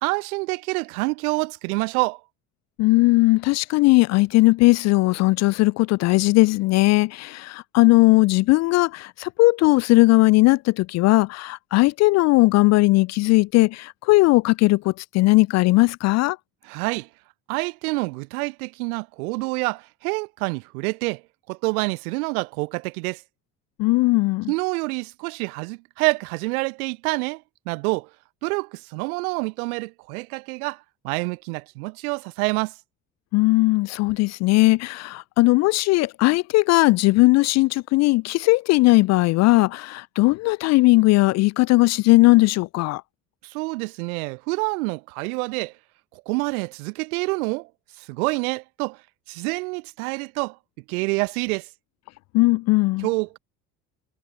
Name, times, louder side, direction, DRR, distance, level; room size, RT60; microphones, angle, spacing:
voice 1, 0.0-2.2 16.6-17.1 17.5-21.2 21.5-23.2 24.5-28.1 28.4-32.7 43.4-45.7 46.1-47.7 48.0-49.0 49.3-50.6 50.9-51.7 53.0-53.4, right 27 dB, 65° right, 1.2 m, -27 dB
voice 2, 2.8-16.4 23.8-24.5 33.3-43.0 52.3-53.1, left 21 dB, 35° left, 0.4 m, -18 dB
figure-of-eight pair, 55°, 47 cm